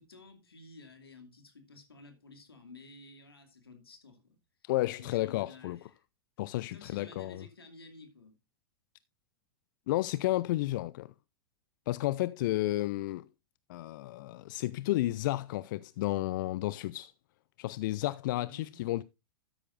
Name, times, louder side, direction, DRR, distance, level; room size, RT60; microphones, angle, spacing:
voice 1, 0.0-4.4 4.6-4.7 5.0-6.0 6.7-8.3 18.3-18.8, left 3 dB, 85° left, 2.6 m, -53 dB
voice 2, 4.6-5.8 6.4-7.5 9.9-11.1 11.9-13.3 13.7-17.1 17.6-19.0, left 16 dB, 55° left, 0.4 m, -32 dB
13.0 x 9.8 x 2.5 m
hypercardioid pair, 100°, 12 cm